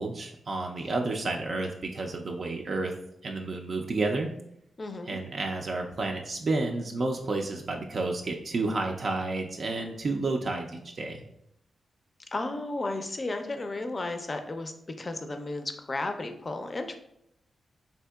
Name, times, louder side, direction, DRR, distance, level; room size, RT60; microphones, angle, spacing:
voice 1, 0.0-2.9 3.2-4.3 5.0-11.2, right 3 dB, 60° right, 1 dB, 0.4 m, -31 dB
voice 2, 4.8-5.2 12.3-14.7 15.0-17.0, left 2 dB, 40° left, 6 dB, 0.4 m, -33 dB
3.6 x 2.7 x 2.2 m, 0.77 s
cardioid pair, 55°, 0 cm